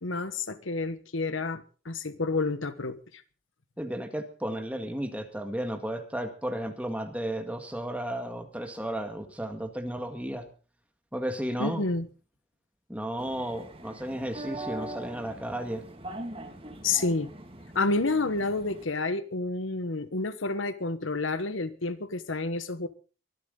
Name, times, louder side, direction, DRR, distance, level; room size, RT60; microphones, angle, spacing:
voice 1, 0.0-3.0 11.6-12.1 16.8-17.3 17.7-22.9, left 3 dB, 80° left, 1.3 m, -29 dB
voice 2, 3.8-10.5 11.1-11.9 12.9-15.8, right 1 dB, 5° right, 1.9 m, -33 dB
sound 1, 13.2-18.8, right 1 dB, 30° right, 2.1 m, -42 dB
23.5 x 11.5 x 3.9 m
head